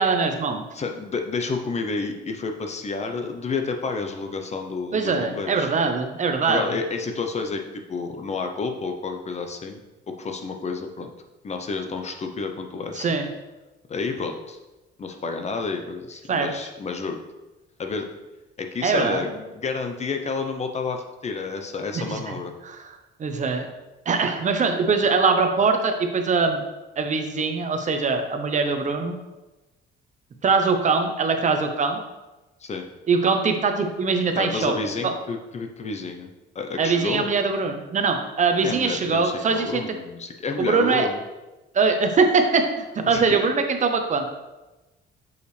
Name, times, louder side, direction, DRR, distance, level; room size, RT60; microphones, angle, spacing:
voice 1, 0.0-0.6 4.9-6.7 12.9-13.3 16.3-16.5 18.8-19.2 21.9-22.4 22.6-22.9 23.2-23.7 24.1-26.6 27.0-29.2 30.4-32.0 33.1-34.7 35.0-35.1 36.8-39.8 40.6-41.1 41.7-44.3, right 4 dB, 40° right, 5 dB, 0.7 m, -22 dB
voice 2, 0.7-5.7 6.5-9.8 10.1-11.1 11.4-13.1 13.9-14.6 15.0-17.2 17.8-18.1 18.6-22.5 32.6-32.9 34.4-36.3 36.5-37.3 38.6-41.2 43.1-43.4, left 4 dB, 35° left, 5 dB, 0.7 m, -30 dB
6.6 x 5.4 x 3.3 m, 1.1 s
cardioid pair, 115°, 20 cm